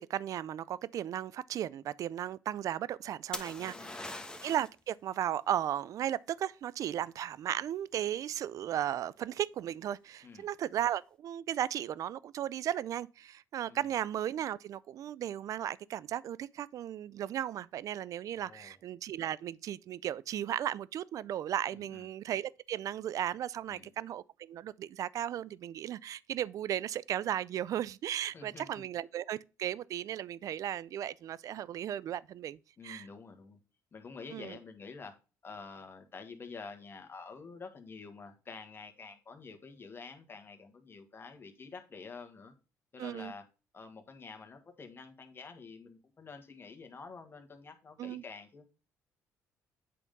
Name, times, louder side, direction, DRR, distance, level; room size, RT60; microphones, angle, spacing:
voice 1, 0.0-4.1 4.4-32.6 32.8-33.1 34.3-34.6 43.0-43.3 48.0-48.2, right 11 dB, 60° right, 0.4 m, -36 dB
sound 1, 3.3-4.8 8.5-8.9, left 2 dB, 15° left, 1.1 m, -42 dB
voice 2, 3.6-4.2 10.2-10.5 13.7-13.8 18.4-18.8 21.7-22.1 23.7-23.9 28.3-28.8 32.8-33.6 33.9-35.1 35.4-42.5 42.9-43.4 43.7-48.7, left 4 dB, 35° left, 1.6 m, -48 dB
8.4 x 3.6 x 5.2 m
supercardioid pair, 75°, 6 cm